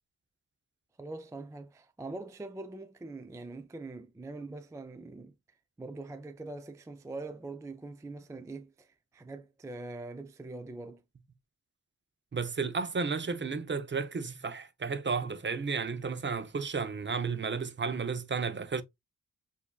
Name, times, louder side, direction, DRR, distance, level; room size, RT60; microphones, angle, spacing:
voice 1, 1.0-5.3 5.8-11.0, right 2 dB, 10° right, 0.3 m, -43 dB
voice 2, 12.3-18.8, right 5 dB, 35° right, 0.7 m, -33 dB
6.9 x 2.7 x 2.3 m
wide cardioid pair, 110°, 31 cm